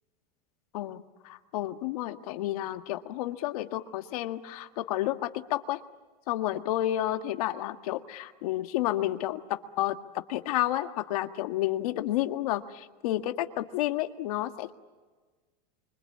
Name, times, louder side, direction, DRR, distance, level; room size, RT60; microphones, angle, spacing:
voice 1, 0.7-5.8 6.3-10.0 10.3-14.7, left 14 dB, 65° left, 8 dB, 1.7 m, -31 dB
26.0 x 25.0 x 8.7 m, 1.3 s
supercardioid pair, 170°, 21 cm